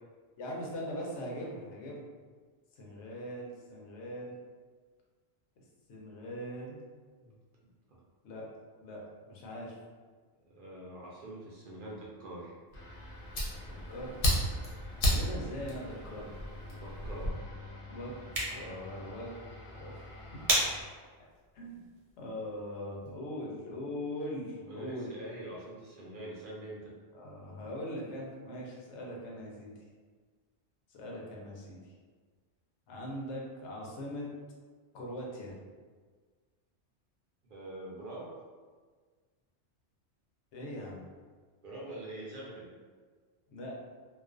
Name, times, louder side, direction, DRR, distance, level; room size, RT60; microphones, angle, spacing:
voice 1, 0.4-2.0 2.8-4.3 5.9-6.8 8.2-8.5 8.8-9.0 9.3-9.8 13.7-14.2 15.1-16.3 17.9-18.1 18.5-19.3 19.7-20.1 21.5-21.8 22.2-25.1 27.1-29.7 30.9-31.9 32.9-34.3 34.9-35.5 40.5-41.0 43.5-43.7, equal, 80° left, -2 dB, 0.9 m, -41 dB
voice 2, 10.4-12.5 16.7-17.5 24.6-26.9 37.4-38.3 41.6-42.7, right 1 dB, 60° right, -5 dB, 0.6 m, -44 dB
Fire, 12.7-17.3, equal, 60° left, 0.8 m, -33 dB
sound 1, 12.7-20.8, left 2 dB, 35° left, 0.6 m, -49 dB
sound 2, 18.1-23.2, right 2 dB, 80° right, 1.0 m, -37 dB
2.3 x 2.3 x 2.4 m, 1.5 s
omnidirectional pair, 1.2 m